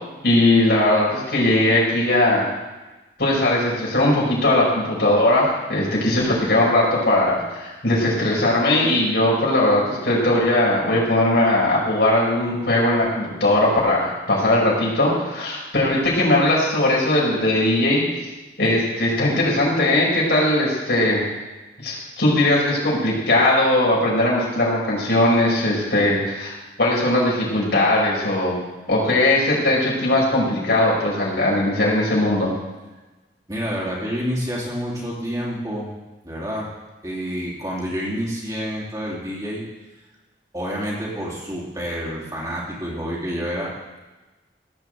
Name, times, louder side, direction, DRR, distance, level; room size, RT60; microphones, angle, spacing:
voice 1, 0.2-2.4 3.2-18.0 18.6-21.2 21.8-26.5 26.8-28.5 28.9-32.5, left 1 dB, 70° left, -5 dB, 5.6 m, -19 dB
voice 2, 33.5-35.9 36.2-36.7 37.0-39.6 40.5-44.0, equal, 20° right, -5 dB, 2.9 m, -28 dB
16.5 x 5.8 x 7.8 m, 1.2 s
head